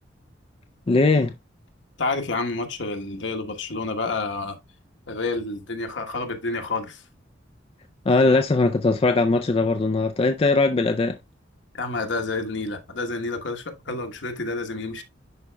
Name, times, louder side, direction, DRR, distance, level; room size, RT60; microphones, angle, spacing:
voice 1, 0.9-1.3 8.1-11.2, left 3 dB, 30° left, 0.4 m, -20 dB
voice 2, 2.0-4.6 5.1-7.0 11.7-15.0, left 3 dB, 65° left, 1.2 m, -29 dB
11.0 x 4.3 x 2.2 m
head